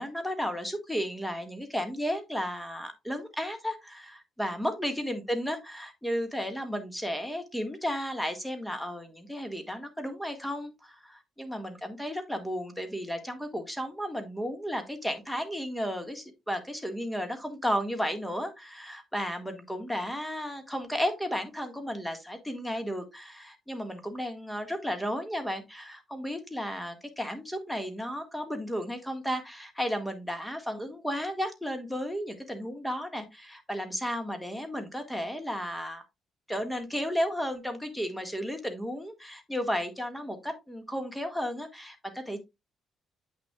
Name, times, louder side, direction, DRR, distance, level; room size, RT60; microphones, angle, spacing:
voice 1, 0.0-36.0 36.5-42.4, equal, 5° left, 1.7 m, -33 dB
8.3 x 6.0 x 2.3 m
cardioid pair, 90°, 0 cm